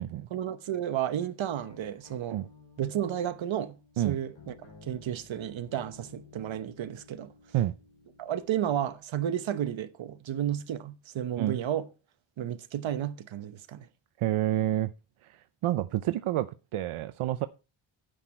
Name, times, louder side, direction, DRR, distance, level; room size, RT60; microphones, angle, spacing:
voice 1, 0.3-2.4 2.8-3.8 4.0-7.3 8.2-11.9 12.4-13.9, right 10 dB, 70° right, 1.0 m, -32 dB
sound 1, 1.5-9.0, left 4 dB, 65° left, 5.7 m, -55 dB
voice 2, 14.2-14.9 15.2-17.5, right 13 dB, 90° right, 0.6 m, -29 dB
10.0 x 8.0 x 4.3 m
wide cardioid pair, 160°, 48 cm